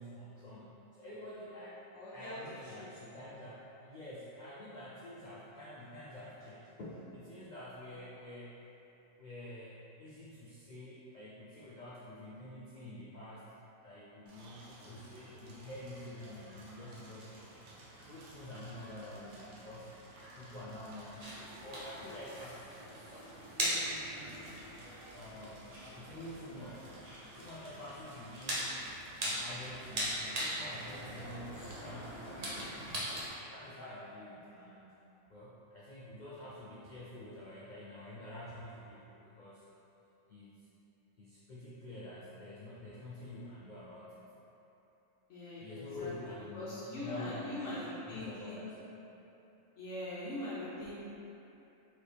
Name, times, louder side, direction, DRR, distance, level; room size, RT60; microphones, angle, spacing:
voice 1, 0.0-1.8 2.1-8.5 9.2-13.5 13.8-17.6 18.0-19.9 20.3-23.2 23.5-24.4 25.1-26.9 27.3-28.8 29.2-32.9 33.5-35.0 35.3-39.6 40.3-40.7 41.2-44.2 45.6-48.8, left 1 dB, 80° left, -7 dB, 0.4 m, -48 dB
voice 2, 1.9-2.9 45.3-46.1 46.5-48.7 49.8-51.0, left 1 dB, 60° left, -10 dB, 1.1 m, -42 dB
Crackle, 14.3-33.3, right 1 dB, 80° right, 1.3 m, -54 dB
sound 1, 21.2-33.2, equal, 40° right, 0.6 m, -40 dB
4.2 x 3.4 x 3.3 m, 3.0 s
omnidirectional pair, 1.5 m